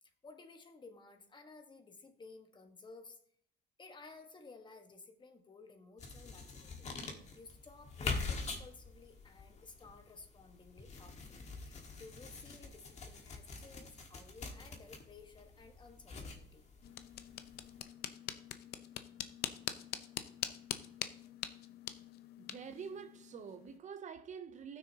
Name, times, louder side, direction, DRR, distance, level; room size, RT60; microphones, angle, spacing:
voice 1, 0.0-3.2 3.8-16.7, left 3 dB, 25° left, 1.3 m, -56 dB
sound 1, 6.0-17.8, left 4 dB, 40° left, 1.6 m, -45 dB
sound 2, 16.8-23.8, left 11 dB, 70° left, 0.6 m, -44 dB
voice 2, 22.4-24.8, right 7 dB, 45° right, 0.6 m, -47 dB
15.0 x 6.4 x 2.8 m
cardioid pair, 110°, 17 cm